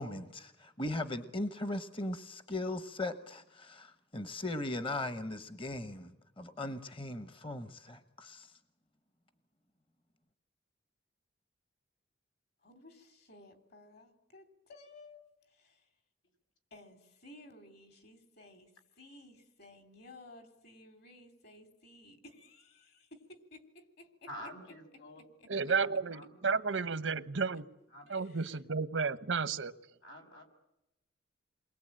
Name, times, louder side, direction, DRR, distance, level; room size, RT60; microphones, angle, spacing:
voice 1, 0.0-8.5, left 2 dB, 30° left, 10 dB, 1.1 m, -38 dB
voice 2, 12.6-15.9 16.7-24.1 25.2-25.5 28.1-28.6, left 2 dB, 60° left, 8 dB, 3.5 m, -56 dB
voice 3, 24.3-25.2 25.7-26.4 27.9-28.1 30.0-30.4, equal, 85° left, 2 dB, 6.2 m, -48 dB
voice 4, 25.5-27.6 28.1-29.7, right 5 dB, 80° right, 14 dB, 1.0 m, -32 dB
28.5 x 22.0 x 8.8 m, 0.89 s
head